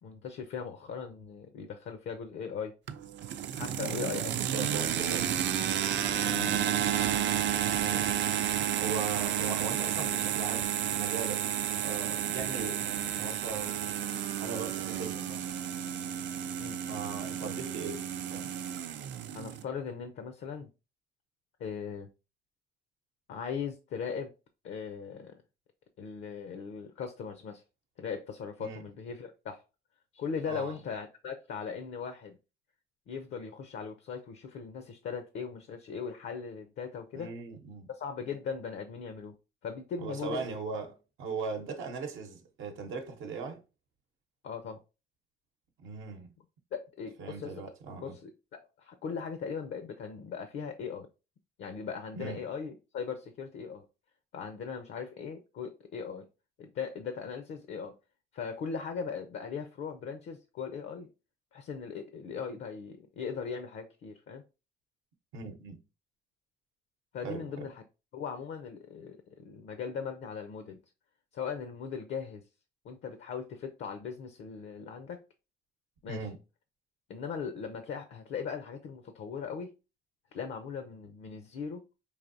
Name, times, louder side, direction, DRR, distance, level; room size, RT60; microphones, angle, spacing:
voice 1, 0.0-2.8 3.5-5.2 6.2-6.4 8.6-8.7 16.6-16.8 19.3-20.7 21.6-22.1 23.3-24.3 24.6-25.4 26.0-27.6 28.0-29.6 30.1-32.4 33.1-37.3 37.9-39.3 39.6-40.5 44.4-44.8 46.7-47.5 48.0-51.1 51.6-53.9 54.3-56.3 56.6-57.9 58.3-61.1 61.5-64.4 67.1-67.8 68.1-70.8 71.3-72.4 72.8-75.2 76.0-76.3 77.1-79.7 80.3-81.9, left 6 dB, 70° left, 0.5 m, -39 dB
sound 1, 2.9-19.6, right 10 dB, 65° right, 0.4 m, -31 dB
voice 2, 3.8-4.1 4.4-5.3 6.3-6.7 7.8-8.1 8.8-11.4 11.8-13.7 14.4-15.5 16.8-18.5 28.6-28.8 30.5-30.8 37.1-37.9 40.0-43.6 45.8-46.3 47.2-48.1 52.2-52.4 65.3-65.8 67.2-67.7 76.1-76.4, right 5 dB, 85° right, 0.8 m, -39 dB
4.8 x 2.7 x 2.6 m
cardioid pair, 90°, 20 cm